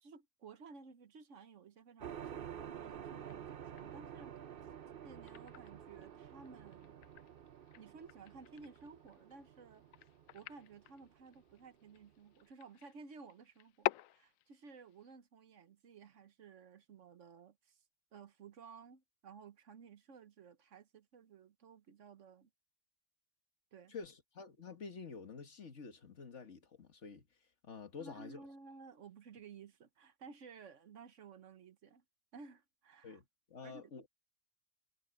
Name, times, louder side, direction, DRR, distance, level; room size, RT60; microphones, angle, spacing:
voice 1, 0.0-4.4 5.0-7.0 7.8-9.8 10.3-17.8 18.1-22.5 23.7-23.9 28.0-32.0 32.3-33.2 33.6-33.9, right 5 dB, 65° right, 1.4 m, -56 dB
sound 1, 2.0-12.1, right 9 dB, 50° right, 0.9 m, -50 dB
sound 2, 3.2-15.1, left 14 dB, 80° left, 1.0 m, -47 dB
voice 2, 23.9-27.3 27.6-28.5 33.0-34.1, left 5 dB, 60° left, 2.0 m, -49 dB
omnidirectional pair, 1.4 m